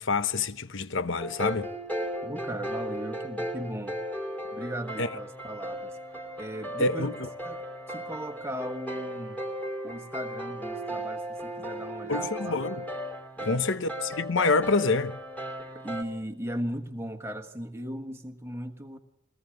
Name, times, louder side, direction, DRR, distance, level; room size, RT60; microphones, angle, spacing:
voice 1, 0.0-1.7 5.0-5.1 6.8-7.3 12.1-12.8 13.4-15.2, left 3 dB, 55° left, 0.9 m, -27 dB
sound 1, 1.2-16.0, equal, 5° left, 3.3 m, -36 dB
voice 2, 2.2-4.0 4.5-6.0 6.4-7.1 7.4-9.4 9.8-12.6 13.4-13.6 15.8-19.0, equal, 10° right, 1.5 m, -37 dB
22.0 x 18.5 x 8.0 m
head